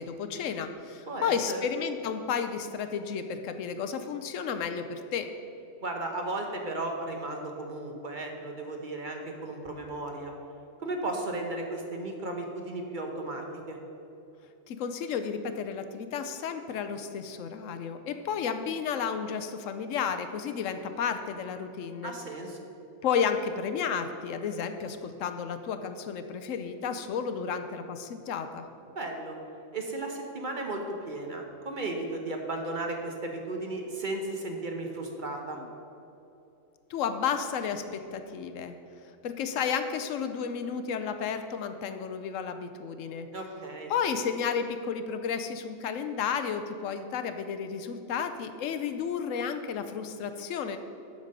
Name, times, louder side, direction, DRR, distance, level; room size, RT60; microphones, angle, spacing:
voice 1, 0.0-5.3 14.7-22.1 23.0-28.7 35.6-35.7 36.9-38.8 39.2-43.3 43.9-50.8, left 6 dB, 85° left, 9 dB, 1.0 m, -32 dB
voice 2, 1.1-1.6 5.8-10.3 10.8-13.8 22.0-22.6 28.9-29.3 29.7-35.6 43.3-43.9, right 2 dB, 45° right, 2 dB, 0.9 m, -35 dB
8.1 x 5.3 x 6.5 m, 2.8 s
omnidirectional pair, 1.3 m